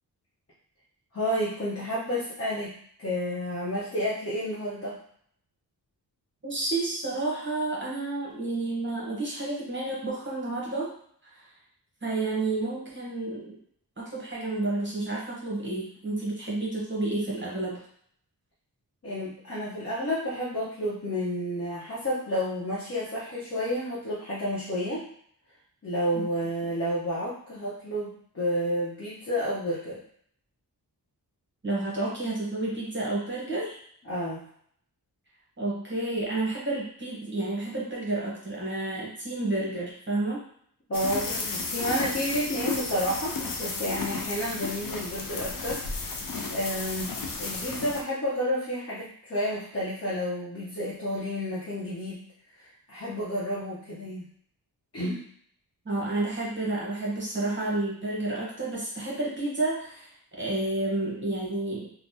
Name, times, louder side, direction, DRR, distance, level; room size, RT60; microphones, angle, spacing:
voice 1, 1.1-5.0 19.0-25.0 25.8-30.0 34.0-34.4 40.9-46.2 46.5-52.2 52.6-54.2 54.9-55.2, equal, 35° left, -8 dB, 0.9 m, -30 dB
voice 2, 6.4-10.9 11.3-11.5 12.0-13.6 14.0-17.8 31.6-33.8 35.6-40.4 55.8-61.9, right 2 dB, 30° right, -5 dB, 1.0 m, -30 dB
sound 1, 40.9-48.0, left 4 dB, 55° left, 0.5 m, -33 dB
3.3 x 2.1 x 2.7 m, 0.63 s
wide cardioid pair, 90°, 40 cm